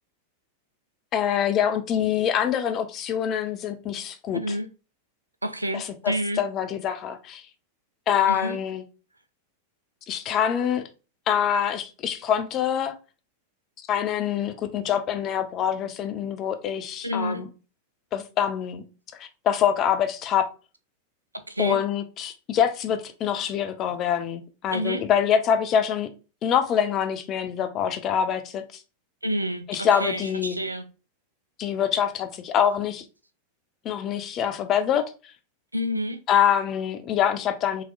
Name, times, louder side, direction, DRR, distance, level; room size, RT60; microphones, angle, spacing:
voice 1, 1.1-4.4 5.7-7.4 8.1-8.8 10.1-10.8 11.3-12.9 13.9-17.5 18.1-18.8 19.2-20.5 21.6-26.1 26.4-28.6 29.7-30.6 31.6-33.0 33.8-35.1 36.3-37.8, left 9 dB, 35° left, 0.5 m, -25 dB
voice 2, 4.3-4.7 5.4-6.4 8.3-8.6 17.0-17.5 21.5-21.8 24.7-25.0 29.2-30.9 35.7-36.2, equal, 85° right, 0.4 m, -29 dB
4.0 x 2.9 x 2.3 m
figure-of-eight pair, 90°, 0 cm